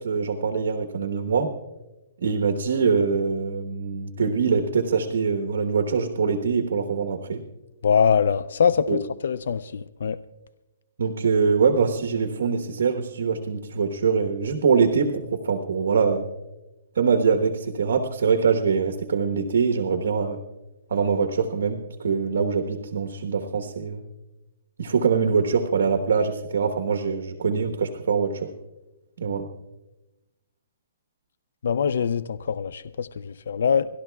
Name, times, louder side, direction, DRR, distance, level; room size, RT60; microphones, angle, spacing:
voice 1, 0.0-1.5 2.2-7.4 8.9-9.0 11.0-16.3 16.9-20.4 20.9-24.0 24.8-28.5 29.2-29.5, right 5 dB, 75° right, 5 dB, 1.1 m, -23 dB
voice 2, 7.8-10.2 31.6-33.9, left 7 dB, 70° left, 16 dB, 0.4 m, -23 dB
30.0 x 12.0 x 2.3 m, 1.0 s
hypercardioid pair, 170°, 0 cm